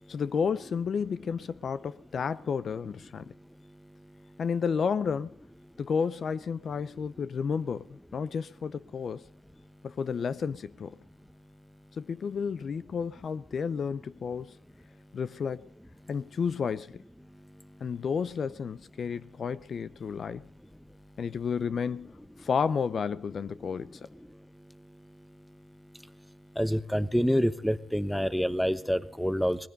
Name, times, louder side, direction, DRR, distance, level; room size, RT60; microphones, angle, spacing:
voice 1, 0.1-3.3 4.4-5.4 5.8-9.2 9.8-11.0 12.0-14.6 15.1-15.7 16.1-17.0 17.8-20.4 21.2-24.1, left 6 dB, 60° left, 0.5 m, -31 dB
voice 2, 26.6-29.6, equal, 5° left, 1.0 m, -27 dB
20.0 x 15.5 x 4.0 m
cardioid pair, 90°, 0 cm